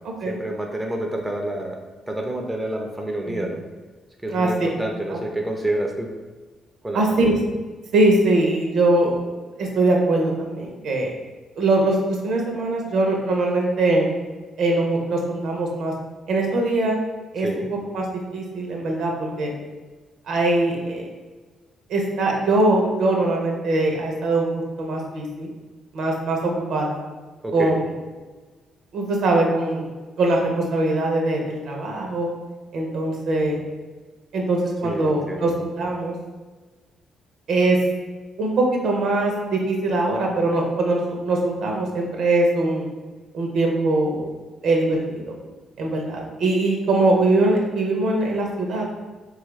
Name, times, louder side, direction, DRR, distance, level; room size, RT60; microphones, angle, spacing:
voice 1, 0.3-1.8 2.1-3.6 4.2-6.1 6.8-7.3 17.4-17.7 27.4-27.8 34.8-35.5, right 1 dB, 15° right, 2 dB, 0.4 m, -28 dB
voice 2, 6.9-7.3 7.9-9.2 9.6-11.1 11.6-14.1 14.6-15.9 16.3-17.0 17.3-18.0 18.3-19.5 20.3-21.1 21.9-25.5 25.9-27.0 27.5-27.9 28.9-29.9 30.2-32.3 32.7-33.6 34.3-36.2 37.5-37.8 38.4-42.9 43.3-44.3 44.6-45.3 45.8-48.9, right 2 dB, 70° right, 0 dB, 0.6 m, -22 dB
3.3 x 2.4 x 3.1 m, 1.3 s
cardioid pair, 90°, 0 cm